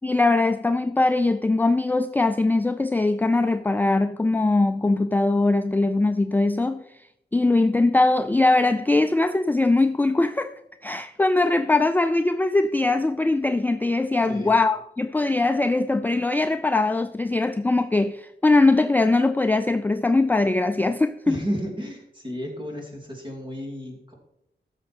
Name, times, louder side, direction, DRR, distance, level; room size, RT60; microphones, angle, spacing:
voice 1, 0.0-6.8 7.3-21.4, left 2 dB, 10° left, 0.3 m, -21 dB
voice 2, 21.3-24.1, equal, 25° right, 2.8 m, -32 dB
15.0 x 6.7 x 4.3 m
wide cardioid pair, 105°, 18 cm